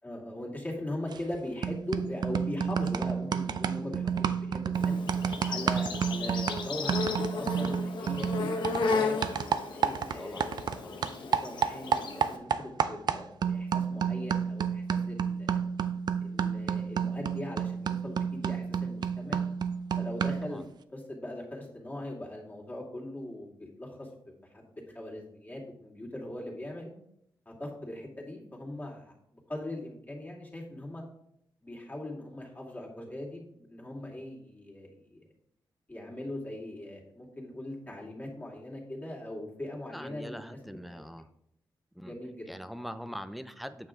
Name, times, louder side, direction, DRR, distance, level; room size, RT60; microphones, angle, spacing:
voice 1, 0.0-5.0 5.4-9.2 9.6-15.6 16.2-19.4 20.0-20.6 20.9-24.3 24.7-26.9 27.5-31.0 31.6-35.2 35.9-41.1 42.0-42.5, left 1 dB, 20° left, -2 dB, 2.7 m, -40 dB
sound 1, 1.1-1.4 1.6-10.8 11.0-20.5, right 7 dB, 60° right, 0.5 m, -30 dB
Insect, 4.7-12.4, left 4 dB, 70° left, 1.1 m, -34 dB
voice 2, 10.2-10.5 10.8-11.0 20.4-20.6 39.9-41.3 42.0-42.1 42.5-43.9, equal, ahead, 11 dB, 0.6 m, -42 dB
8.8 x 6.8 x 3.7 m, 0.74 s
cardioid pair, 105°, 8 cm